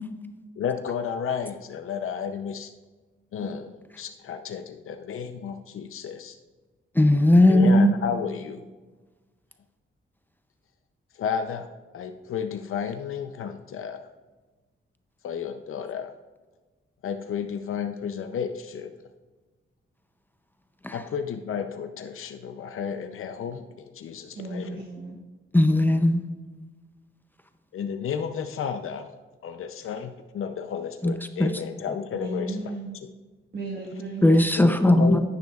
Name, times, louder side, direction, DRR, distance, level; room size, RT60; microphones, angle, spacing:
voice 1, 0.6-2.7 3.3-6.4 7.5-8.6 11.2-11.7 11.9-14.0 15.2-16.1 17.0-18.9 20.9-24.8 27.7-29.0 29.4-32.7 34.6-35.2, left 7 dB, 85° left, 7 dB, 0.6 m, -32 dB
voice 2, 7.0-7.9 20.8-21.0 25.5-26.2 31.0-31.1 31.4-31.5 34.2-35.2, left 1 dB, 10° left, 7 dB, 0.5 m, -18 dB
voice 3, 24.3-25.2 32.1-32.9 33.5-35.2, right 2 dB, 50° right, -2 dB, 1.4 m, -35 dB
10.5 x 9.7 x 2.4 m, 1.3 s
wide cardioid pair, 130°, 21 cm